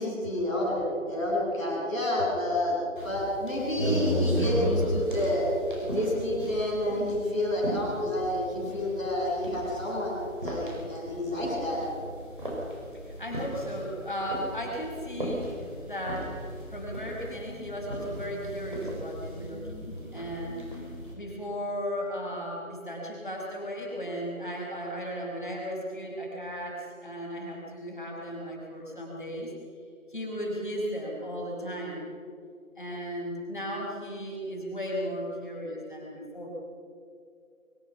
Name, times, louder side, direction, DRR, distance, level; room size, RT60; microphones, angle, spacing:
voice 1, 0.0-5.5 5.8-11.8, left 1 dB, 5° right, -17 dB, 4.1 m, -29 dB
sound 1, 3.0-21.1, equal, 35° right, 5.3 m, -35 dB
voice 2, 12.9-16.5 16.7-20.8 21.1-29.5 30.1-32.1 32.8-36.5, equal, 35° left, -2 dB, 5.6 m, -36 dB
23.0 x 22.0 x 5.9 m, 2.3 s
figure-of-eight pair, 170°, 41 cm